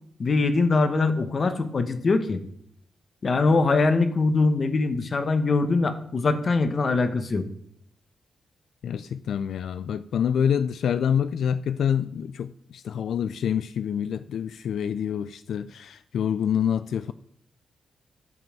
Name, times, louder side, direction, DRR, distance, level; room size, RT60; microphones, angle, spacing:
voice 1, 0.2-2.4 3.2-7.4, left 3 dB, 35° left, 1.0 m, -22 dB
voice 2, 8.8-17.1, left 8 dB, 80° left, 0.3 m, -27 dB
10.5 x 5.3 x 7.5 m
wide cardioid pair, 155°, 0 cm